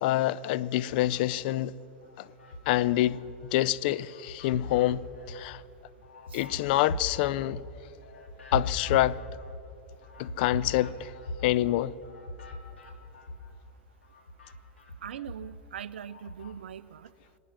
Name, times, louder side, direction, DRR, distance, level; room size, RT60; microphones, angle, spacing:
voice 1, 0.0-1.7 2.2-2.3 2.7-3.2 3.5-5.6 6.3-7.6 8.5-9.2 10.2-11.1 11.4-11.9, left 14 dB, 55° left, 0.4 m, -26 dB
sound 1, 0.8-1.6 2.0-3.6 4.0-13.7 14.0-16.6, left 2 dB, 80° left, 1.9 m, -40 dB
voice 2, 15.0-17.1, right 9 dB, 75° right, 0.4 m, -41 dB
25.0 x 9.1 x 6.0 m
figure-of-eight pair, 85°, 6 cm